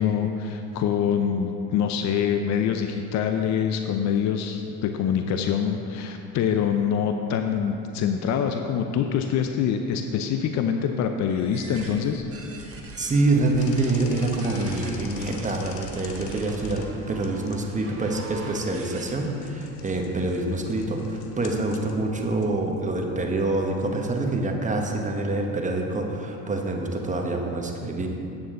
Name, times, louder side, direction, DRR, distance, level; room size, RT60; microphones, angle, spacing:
voice 1, 0.0-12.3, left 7 dB, 45° left, 6 dB, 0.5 m, -25 dB
sound 1, 11.3-19.0, right 2 dB, 35° right, 1.4 m, -41 dB
voice 2, 13.0-28.1, right 2 dB, 20° right, 1 dB, 1.1 m, -26 dB
sound 2, 13.6-24.0, left 6 dB, 90° left, 0.8 m, -46 dB
8.6 x 7.0 x 3.8 m, 2.8 s
hypercardioid pair, 80°, 40 cm